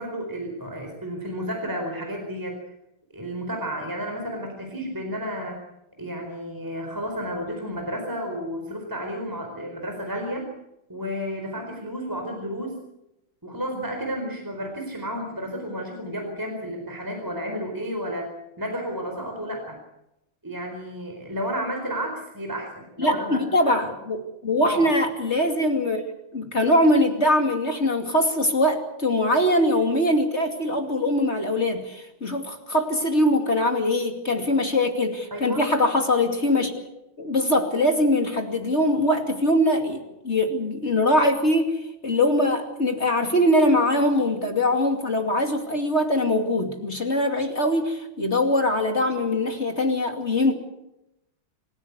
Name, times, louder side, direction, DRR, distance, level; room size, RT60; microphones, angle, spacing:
voice 1, 0.0-2.6 3.1-5.6 6.0-10.5 10.9-12.8 13.4-18.3 18.6-19.8 20.4-23.4 24.6-24.9 35.3-35.7, equal, 10° right, 2 dB, 4.3 m, -32 dB
voice 2, 23.0-26.0 26.3-36.7 37.2-50.5, left 1 dB, 30° left, 4 dB, 2.7 m, -22 dB
27.5 x 16.0 x 8.2 m, 0.87 s
omnidirectional pair, 2.3 m